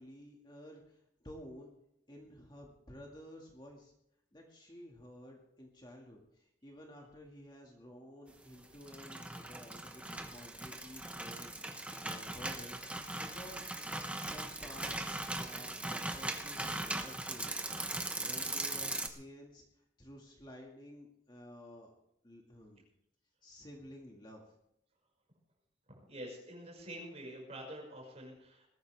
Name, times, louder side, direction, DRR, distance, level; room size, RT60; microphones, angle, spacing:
voice 1, 0.0-1.7 2.1-3.9 4.3-12.9 13.2-13.7 14.2-17.5 18.2-19.6 20.0-21.9 22.2-22.9 23.4-24.4, equal, 25° left, 0 dB, 2.0 m, -52 dB
sound 1, 8.6-19.1, right 2 dB, 5° right, 0.9 m, -39 dB
voice 2, 26.1-28.7, right 1 dB, 35° right, -1 dB, 5.8 m, -47 dB
20.5 x 14.0 x 3.5 m, 0.77 s
head